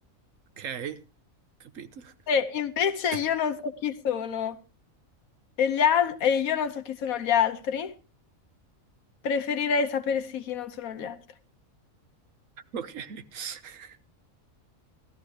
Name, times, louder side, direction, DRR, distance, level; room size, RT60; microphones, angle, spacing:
voice 1, 0.6-1.0 1.6-2.1 12.7-14.0, right 7 dB, 70° right, 1.4 m, -38 dB
voice 2, 2.3-4.6 5.6-7.9 9.2-11.2, left 7 dB, 90° left, 1.3 m, -26 dB
17.5 x 13.5 x 3.2 m
omnidirectional pair, 1.4 m